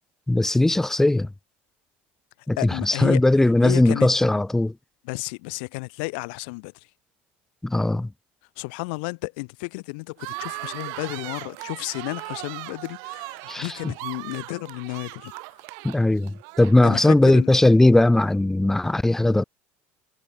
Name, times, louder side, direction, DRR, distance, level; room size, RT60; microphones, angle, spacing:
voice 1, 0.3-1.3 2.5-4.7 7.6-8.1 13.5-13.9 15.8-19.4, left 2 dB, 5° left, 5.7 m, -19 dB
voice 2, 2.6-3.2 3.6-4.1 5.0-6.7 8.6-15.3 16.8-17.5, left 30 dB, 80° left, 6.0 m, -32 dB
sound 1, 10.2-17.1, right 34 dB, 75° right, 6.8 m, -38 dB
supercardioid pair, 120°, 6 cm